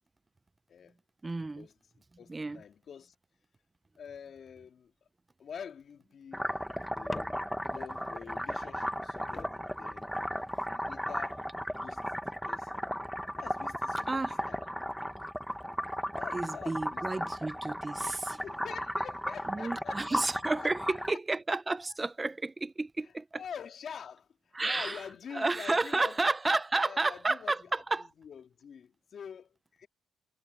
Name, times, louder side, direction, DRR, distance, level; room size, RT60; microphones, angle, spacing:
voice 1, 1.2-1.7 2.3-2.6 14.1-14.4 16.3-18.4 19.5-23.4 24.5-25.1 25.3-28.1, right 3 dB, 20° right, 0.6 m, -31 dB
voice 2, 2.2-3.1 4.0-4.9 5.4-6.5 6.9-10.1 10.7-12.0 12.4-12.9 13.3-14.6 16.1-17.3 18.0-20.2 20.5-21.2 23.0-24.3 24.6-26.2 26.8-27.5 28.0-29.9, left 7 dB, 55° left, 2.3 m, -46 dB
sound 1, 6.3-21.1, equal, ahead, 1.1 m, -35 dB
sound 2, 7.1-7.8 9.0-9.1 9.3-10.8 11.6-12.0, left 2 dB, 20° left, 0.6 m, -47 dB
cardioid pair, 90°, 0 cm